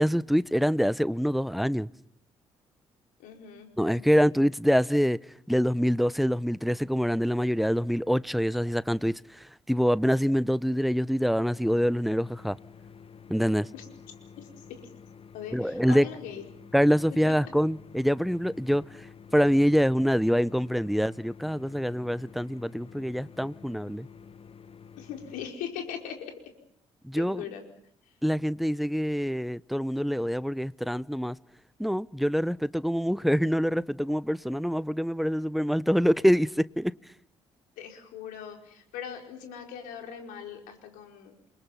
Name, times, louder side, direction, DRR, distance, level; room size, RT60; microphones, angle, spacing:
voice 1, 0.0-1.9 3.8-5.2 5.5-12.6 13.3-13.7 15.5-16.1 16.7-18.8 19.3-24.1 27.0-27.4 28.2-31.4 31.8-37.0, equal, ahead, 0.9 m, -25 dB
voice 2, 3.2-4.3 13.7-13.9 14.4-14.6 15.3-16.4 17.2-17.3 25.0-26.3 27.1-27.6 28.0-28.2 37.8-41.6, left 8 dB, 75° left, 5.0 m, -40 dB
sound 1, 11.5-25.5, left 6 dB, 45° left, 1.3 m, -50 dB
29.5 x 23.5 x 5.9 m
hypercardioid pair, 45°, 14 cm